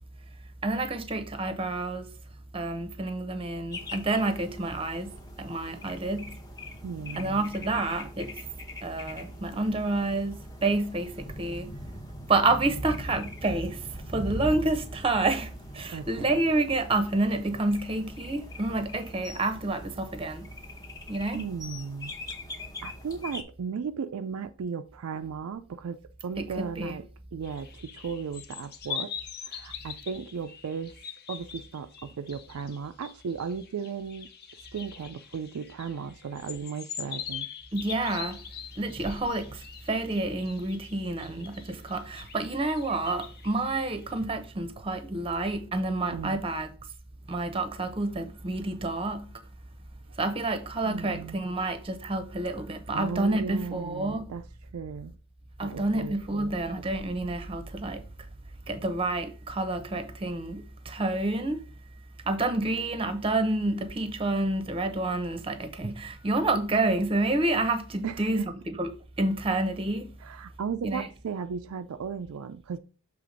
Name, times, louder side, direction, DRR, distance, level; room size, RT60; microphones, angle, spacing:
voice 1, 0.6-2.1 2.5-6.4 7.2-8.4 8.8-11.7 12.3-20.5 21.1-21.4 26.4-26.9 37.7-38.4 38.8-46.7 47.3-49.3 50.2-54.3 55.6-58.1 58.7-61.6 62.2-68.4 68.7-68.9 69.2-70.1 70.8-71.1, right 2 dB, 25° right, 0.7 m, -29 dB
sound 1, 3.7-23.4, left 1 dB, 15° left, 0.8 m, -42 dB
voice 2, 6.8-7.4 15.9-16.4 21.3-22.1 22.8-27.0 27.3-29.1 29.4-31.0 31.3-34.3 34.7-37.5 46.1-46.4 50.8-51.4 52.9-54.5 54.7-55.1 55.6-56.5 68.0-68.5 70.2-72.8, right 6 dB, 70° right, 0.4 m, -36 dB
sound 2, 27.4-44.1, left 8 dB, 45° left, 0.7 m, -42 dB
6.7 x 3.5 x 5.0 m
head